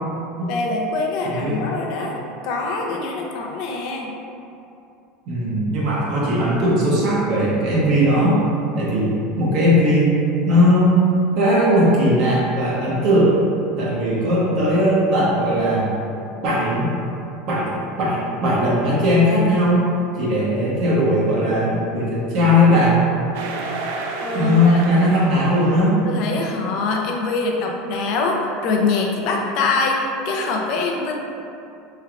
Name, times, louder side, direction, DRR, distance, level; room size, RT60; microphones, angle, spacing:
voice 1, 0.5-4.1 24.2-24.8 26.1-31.1, left 3 dB, 45° left, 0 dB, 0.4 m, -24 dB
voice 2, 1.2-1.7 5.3-8.4 8.7-10.2 10.5-11.1 11.4-13.3 13.8-15.9 16.4-16.9 17.5-17.7 18.0-19.9 20.2-23.0 24.3-26.0, equal, 45° right, -7 dB, 0.7 m, -18 dB
sound 1, 23.3-25.9, right 3 dB, 70° right, 0.3 m, -31 dB
3.4 x 3.3 x 2.4 m, 2.6 s
supercardioid pair, 170°, 0 cm